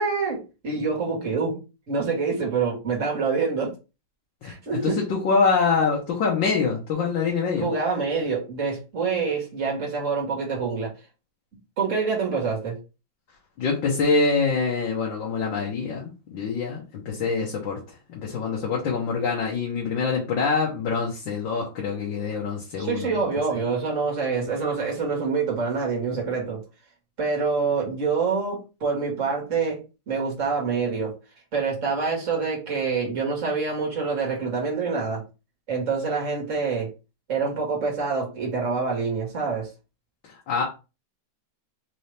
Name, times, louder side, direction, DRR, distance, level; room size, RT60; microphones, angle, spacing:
voice 1, 0.0-3.7 4.4-5.1 7.6-10.9 11.8-12.8 22.8-26.6 27.2-31.2 31.5-35.2 35.7-36.9 37.3-39.7, right 5 dB, 45° right, 2.0 m, -26 dB
voice 2, 5.2-7.7 13.6-17.8 18.1-23.2 40.5-40.6, left 5 dB, 90° left, 1.8 m, -25 dB
4.6 x 2.8 x 3.3 m
omnidirectional pair, 2.0 m